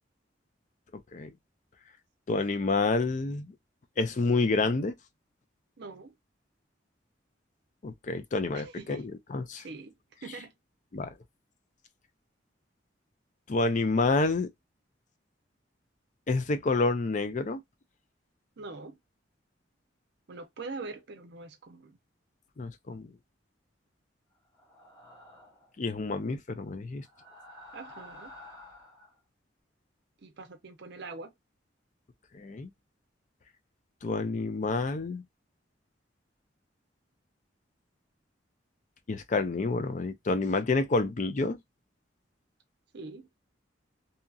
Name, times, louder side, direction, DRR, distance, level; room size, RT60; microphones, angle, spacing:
voice 1, 2.3-3.5 4.0-4.9 7.8-9.6 10.9-11.1 13.5-14.5 16.3-17.6 22.6-23.1 25.8-27.0 32.3-32.7 34.0-35.2 39.1-41.6, left 3 dB, 40° left, 0.5 m, -28 dB
voice 2, 5.8-6.1 8.5-9.1 9.6-10.0 10.2-10.5 18.6-19.0 20.3-22.0 27.7-28.3 30.2-31.3 42.9-43.3, right 3 dB, 60° right, 0.6 m, -43 dB
sound 1, 24.5-25.7 27.0-29.2, left 1 dB, 20° left, 1.0 m, -50 dB
2.8 x 2.7 x 2.3 m
head